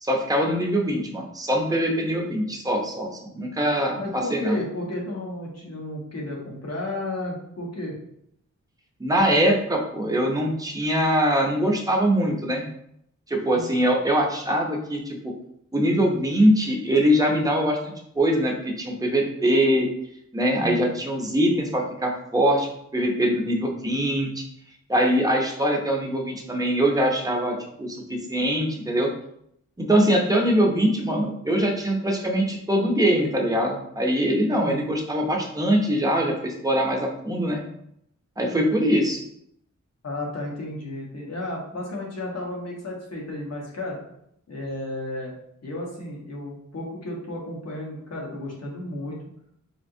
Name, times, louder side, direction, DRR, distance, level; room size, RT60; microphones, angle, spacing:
voice 1, 0.0-4.6 9.0-12.7 13.3-15.2 15.7-19.9 20.3-24.4 24.9-29.1 29.8-37.6 38.4-39.2, equal, 10° right, 0 dB, 0.5 m, -23 dB
voice 2, 4.0-7.9 13.5-13.7 20.6-20.9 30.4-30.5 34.6-34.9 38.5-38.9 40.0-44.0 44.5-45.3 45.6-49.2, left 1 dB, 55° left, -2 dB, 1.1 m, -33 dB
4.2 x 2.8 x 2.6 m, 0.73 s
wide cardioid pair, 170°, 30 cm